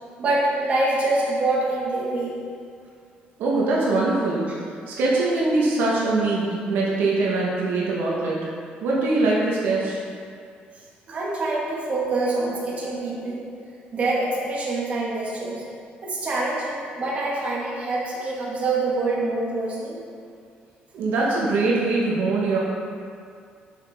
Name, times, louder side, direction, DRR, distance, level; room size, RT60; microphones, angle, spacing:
voice 1, 0.2-2.4 11.1-13.4 13.9-15.6 16.0-20.0, right 2 dB, 40° right, -6 dB, 1.8 m, -25 dB
voice 2, 3.4-4.4 4.9-8.4 8.8-10.0 20.9-22.6, right 3 dB, 85° right, -5 dB, 1.3 m, -22 dB
7.4 x 6.6 x 3.7 m, 2.2 s
cardioid pair, 140°, 4 cm